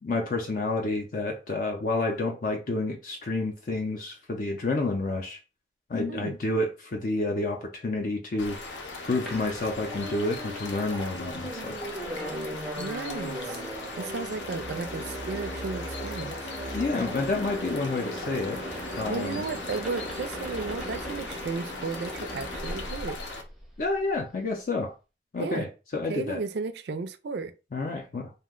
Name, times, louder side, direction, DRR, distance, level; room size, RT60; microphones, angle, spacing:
voice 1, 0.0-5.4 5.9-8.6 9.0-11.8 16.7-18.6 19.0-19.4 23.8-24.9 25.3-26.4 27.7-28.3, left 2 dB, 45° left, 0.4 m, -29 dB
sound 1, 8.4-23.4, left 3 dB, 85° left, 0.7 m, -39 dB
sound 2, 9.3-24.0, equal, ahead, 0.5 m, -38 dB
voice 2, 12.8-13.6 14.0-16.4 19.1-23.2 25.4-25.7 26.1-27.5, right 4 dB, 65° right, 0.4 m, -34 dB
2.7 x 2.1 x 3.6 m
head